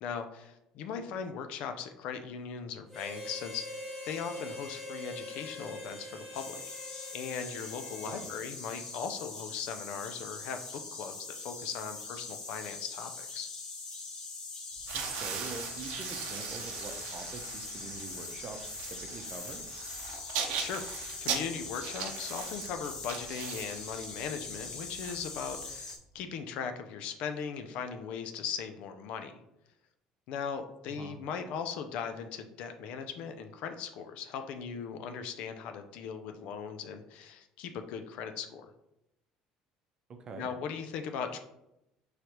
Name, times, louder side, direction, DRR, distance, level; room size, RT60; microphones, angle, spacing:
voice 1, 0.0-6.6 7.1-10.6 10.9-13.5 20.6-20.8 21.2-29.4 30.3-38.7 40.4-41.4, left 6 dB, 65° left, 7 dB, 0.4 m, -39 dB
Harmonica, 2.9-8.5, left 1 dB, 10° left, 1.2 m, -44 dB
sound 1, 6.3-26.0, left 3 dB, 35° left, 0.9 m, -42 dB
sound 2, 14.8-25.8, right 7 dB, 70° right, 0.6 m, -39 dB
voice 2, 14.9-19.6 31.0-31.2 40.2-40.5, right 3 dB, 35° right, 5 dB, 0.7 m, -44 dB
5.0 x 3.1 x 3.0 m, 0.85 s
cardioid pair, 140°, 2 cm